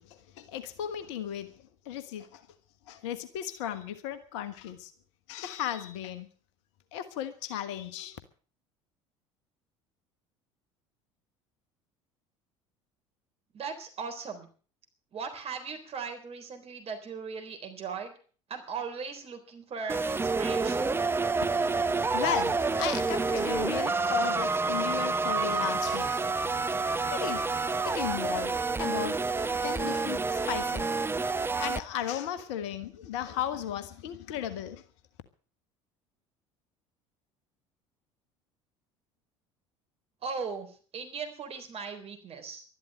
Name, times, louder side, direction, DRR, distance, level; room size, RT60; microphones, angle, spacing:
voice 1, 0.0-1.5 1.8-2.4 2.9-4.9 5.3-6.3 6.9-8.2 21.5-29.2 29.6-31.0 31.6-34.8, left 10 dB, 65° left, 11 dB, 1.3 m, -36 dB
voice 2, 13.5-14.5 15.1-18.1 18.5-21.0 40.2-42.6, right 5 dB, 40° right, 5 dB, 3.8 m, -38 dB
sound 1, 19.9-31.8, right 4 dB, 15° right, 0.8 m, -28 dB
12.5 x 11.5 x 7.6 m, 0.42 s
figure-of-eight pair, 65°, 16 cm